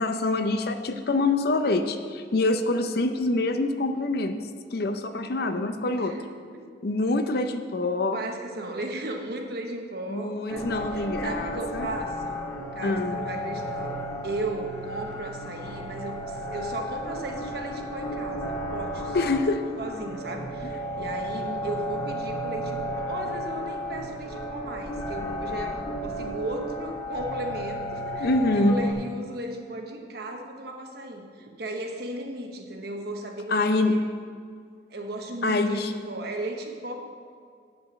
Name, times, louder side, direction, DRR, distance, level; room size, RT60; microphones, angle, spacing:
voice 1, 0.0-4.4 4.7-6.1 6.8-8.2 10.1-11.9 12.8-13.2 19.1-19.7 28.2-28.8 33.5-33.9 35.4-35.9, left 2 dB, 60° left, 8 dB, 0.6 m, -25 dB
voice 2, 5.9-6.7 8.1-12.4 12.7-19.2 19.8-34.1 34.9-37.0, right 1 dB, 65° right, 3 dB, 1.1 m, -36 dB
sound 1, 10.5-28.9, equal, 20° left, 1.6 m, -33 dB
8.7 x 5.5 x 7.1 m, 2.2 s
head